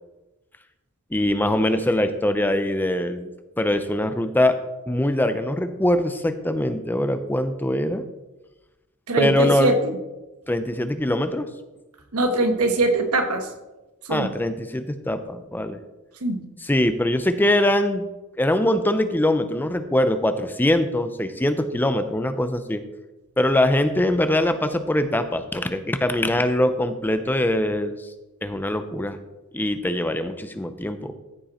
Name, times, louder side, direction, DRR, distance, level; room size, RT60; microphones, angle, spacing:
voice 1, 1.1-3.3 3.6-4.6 4.9-8.0 9.2-9.7 10.5-11.5 14.1-15.8 16.6-18.0 18.4-22.8 23.4-28.0 28.4-29.2 29.5-31.1, left 1 dB, 10° left, 9 dB, 0.5 m, -22 dB
voice 2, 9.1-9.7 12.1-13.5 14.0-14.3 16.2-16.4, right 2 dB, 85° right, 5 dB, 1.3 m, -22 dB
14.0 x 5.3 x 4.3 m, 1.1 s
head